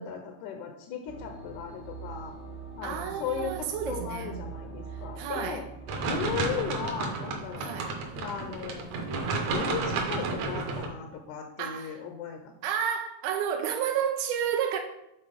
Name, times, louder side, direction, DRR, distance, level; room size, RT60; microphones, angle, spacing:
voice 1, 0.0-2.3 2.8-5.6 6.1-7.9 8.2-8.9 9.3-12.5, left 7 dB, 80° left, 2.1 m, -37 dB
sound 1, 1.1-6.2, right 4 dB, 60° left, 0.6 m, -42 dB
voice 2, 2.8-4.4 4.9-5.6 7.6-7.9 11.6-12.0 12.6-14.8, right 8 dB, 85° right, 1.5 m, -31 dB
sound 2, 5.9-10.9, right 3 dB, 65° right, 2.0 m, -31 dB
7.7 x 4.1 x 5.2 m
omnidirectional pair, 3.7 m